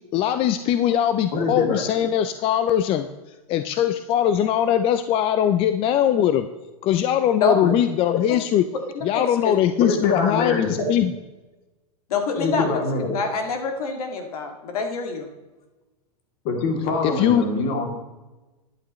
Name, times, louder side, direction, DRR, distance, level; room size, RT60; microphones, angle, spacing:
voice 1, 0.1-3.1 3.5-6.5 6.8-8.7 9.0-11.1 17.0-17.4, left 10 dB, 30° left, 11 dB, 0.5 m, -21 dB
voice 2, 1.3-1.8 7.6-7.7 9.8-10.9 12.3-13.2 16.4-17.9, left 3 dB, 45° left, 2 dB, 2.8 m, -24 dB
voice 3, 7.4-7.7 9.1-9.5 12.1-12.6 13.1-15.3, left 5 dB, 75° left, 4 dB, 2.1 m, -25 dB
12.5 x 11.0 x 3.1 m, 1.1 s
hypercardioid pair, 135°, 19 cm